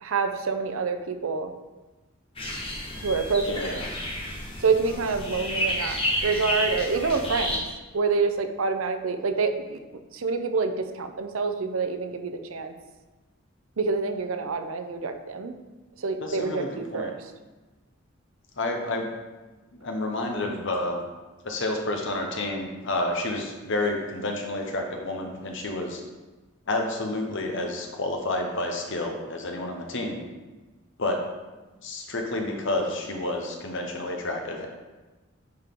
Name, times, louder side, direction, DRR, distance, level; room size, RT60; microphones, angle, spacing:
voice 1, 0.0-1.5 3.0-3.8 4.6-7.6 7.9-9.8 10.1-12.7 13.8-15.5 16.0-17.3, right 4 dB, 85° right, 8 dB, 0.6 m, -27 dB
sound 1, 2.4-7.6, left 1 dB, 25° left, 1.2 m, -31 dB
voice 2, 3.5-3.9 16.2-17.1 18.6-19.1 19.8-21.0 21.4-26.0 26.7-30.2 31.0-31.2 31.8-34.7, left 2 dB, 60° left, 2 dB, 1.1 m, -29 dB
8.6 x 4.5 x 3.8 m, 1.2 s
head